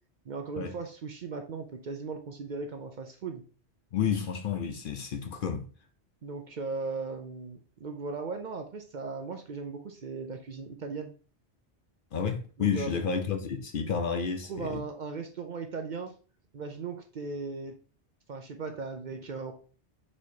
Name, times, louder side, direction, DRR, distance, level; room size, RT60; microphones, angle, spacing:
voice 1, 0.3-3.4 6.2-11.1 12.6-13.0 14.5-16.1 16.5-17.7 18.3-19.5, right 4 dB, 55° right, 0.6 m, -37 dB
voice 2, 3.9-5.7 12.1-14.8, left 7 dB, 60° left, 0.6 m, -31 dB
4.6 x 4.3 x 2.7 m
omnidirectional pair, 1.1 m